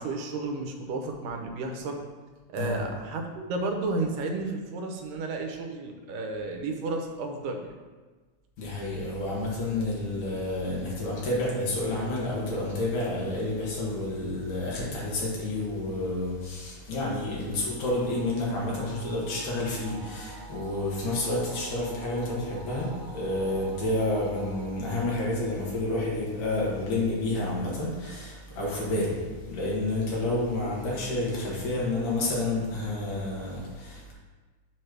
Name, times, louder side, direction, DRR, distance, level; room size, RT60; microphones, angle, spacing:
voice 1, 0.0-2.0 2.5-7.8 17.5-17.6 21.0-21.2, right 3 dB, 85° right, 3 dB, 2.4 m, -32 dB
voice 2, 8.6-34.1, left 2 dB, 75° left, -5 dB, 3.2 m, -29 dB
sound 1, 17.8-26.4, right 3 dB, 55° right, 2.3 m, -48 dB
7.4 x 3.3 x 5.9 m, 1.3 s
omnidirectional pair, 3.7 m